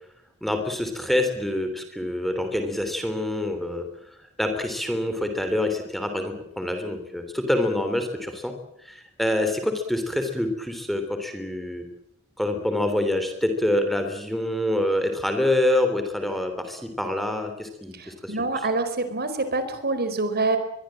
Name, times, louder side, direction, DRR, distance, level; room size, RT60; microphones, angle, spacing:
voice 1, 0.4-3.9 4.4-8.5 8.8-11.8 12.4-18.4, left 1 dB, ahead, 6 dB, 3.2 m, -26 dB
voice 2, 17.9-20.6, right 3 dB, 45° right, 10 dB, 4.5 m, -26 dB
23.5 x 22.5 x 7.6 m, 0.79 s
head